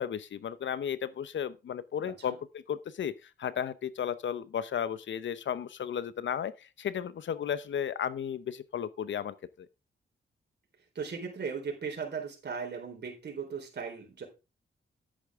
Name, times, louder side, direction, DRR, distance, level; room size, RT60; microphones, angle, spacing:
voice 1, 0.0-9.7, left 8 dB, 70° left, 0.8 m, -34 dB
voice 2, 2.0-2.4 10.9-14.2, right 5 dB, 60° right, 4.1 m, -37 dB
10.5 x 8.7 x 3.6 m
cardioid pair, 70°, 20 cm